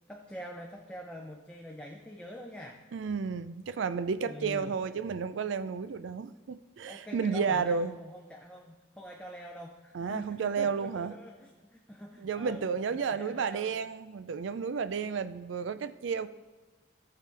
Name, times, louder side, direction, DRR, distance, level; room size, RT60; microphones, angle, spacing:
voice 1, 0.1-2.8 4.2-4.8 6.9-13.9, equal, 5° left, 0 dB, 0.6 m, -45 dB
voice 2, 2.9-7.9 9.9-11.1 12.2-16.3, right 5 dB, 70° right, 13 dB, 0.4 m, -32 dB
14.5 x 6.8 x 3.3 m, 1.3 s
head